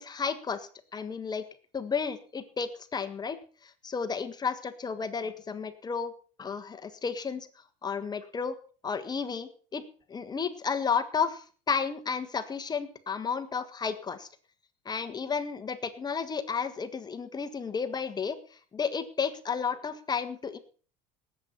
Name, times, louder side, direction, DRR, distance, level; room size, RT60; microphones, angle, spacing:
voice 1, 0.0-1.4 1.7-3.4 3.6-6.1 6.4-7.5 7.8-8.5 8.8-9.8 10.1-14.3 14.8-18.4 18.7-20.6, left 6 dB, 25° left, 9 dB, 1.5 m, -32 dB
19.0 x 8.1 x 5.8 m, 0.41 s
supercardioid pair, 115°, 17 cm